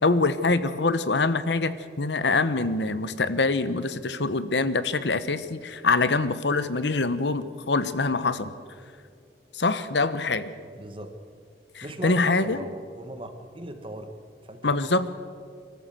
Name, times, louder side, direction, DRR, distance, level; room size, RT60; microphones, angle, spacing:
voice 1, 0.0-8.5 9.5-10.5 11.7-12.6 14.6-15.1, left 3 dB, 85° left, 13 dB, 1.0 m, -24 dB
voice 2, 10.7-11.1 11.8-14.1 14.4-14.8, right 1 dB, 30° right, 7 dB, 1.6 m, -39 dB
24.5 x 14.0 x 7.8 m, 2.2 s
head